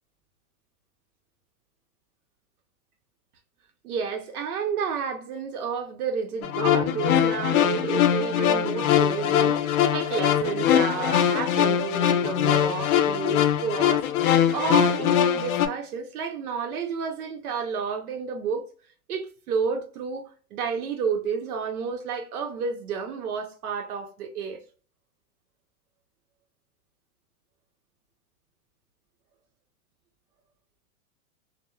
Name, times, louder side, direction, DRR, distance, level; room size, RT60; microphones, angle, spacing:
voice 1, 3.8-14.0 14.5-18.6 19.1-20.2 20.5-24.6, right 6 dB, 85° right, 0.7 m, -30 dB
sound 1, 6.4-15.7, left 9 dB, 75° left, 0.5 m, -22 dB
2.3 x 2.0 x 3.0 m
supercardioid pair, 160°, 43 cm